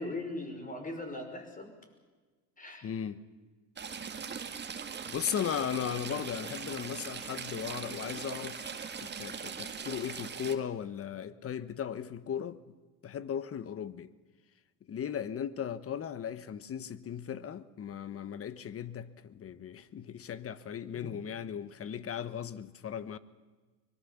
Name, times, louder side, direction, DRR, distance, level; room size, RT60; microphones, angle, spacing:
voice 1, 0.0-1.7 2.6-2.9 21.0-21.1, left 2 dB, 20° left, 5.7 m, -39 dB
voice 2, 2.8-3.2 5.1-8.7 9.0-12.6 13.0-14.1 14.9-23.2, left 8 dB, 40° left, 1.2 m, -37 dB
Stream / Trickle dribble, 3.8-10.5, right 6 dB, 30° right, 1.9 m, -40 dB
24.5 x 20.0 x 7.3 m
supercardioid pair, 100°, 36 cm